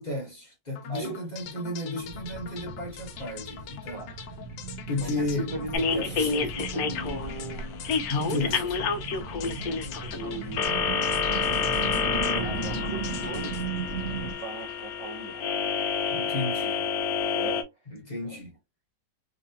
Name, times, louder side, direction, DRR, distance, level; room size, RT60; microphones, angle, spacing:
voice 1, 0.0-4.0 4.9-5.5 6.2-6.5 8.1-8.6 16.1-16.8 17.9-18.5, left 2 dB, 30° left, 1.0 m, -33 dB
sound 1, 0.8-14.8, left 8 dB, 85° left, 1.3 m, -44 dB
voice 2, 0.9-1.3 3.9-4.2 5.0-7.9 8.5-8.7 9.3-11.3 11.8-13.6 14.1-15.5 17.2-18.4, right 2 dB, 35° right, 0.6 m, -39 dB
sound 2, 2.0-14.3, right 4 dB, 50° right, 1.2 m, -36 dB
sound 3, 5.7-17.6, left 6 dB, 70° left, 1.0 m, -29 dB
3.8 x 3.1 x 2.7 m
omnidirectional pair, 1.9 m